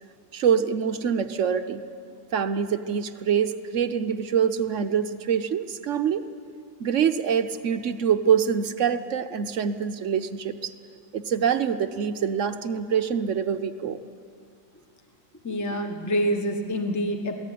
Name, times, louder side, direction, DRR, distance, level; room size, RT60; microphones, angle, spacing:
voice 1, 0.3-1.9 2.3-6.2 6.8-10.7 11.1-14.0, right 7 dB, 60° right, 9 dB, 0.8 m, -25 dB
voice 2, 15.4-17.4, equal, 10° left, 5 dB, 1.1 m, -26 dB
21.5 x 16.5 x 10.0 m, 2.3 s
omnidirectional pair, 2.0 m